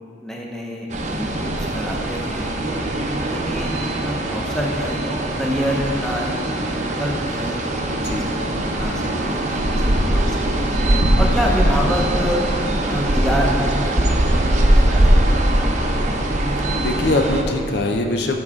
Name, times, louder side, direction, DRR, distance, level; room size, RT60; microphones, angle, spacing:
voice 1, 0.2-5.0 5.4-10.8 11.2-12.4 12.9-16.1, equal, 5° left, -2 dB, 0.9 m, -28 dB
sound 1, 0.9-17.4, right 1 dB, 40° right, 0.7 m, -21 dB
voice 2, 7.9-8.3 16.7-18.4, left 2 dB, 60° left, 3 dB, 0.6 m, -22 dB
12.5 x 5.6 x 3.6 m, 2.9 s
head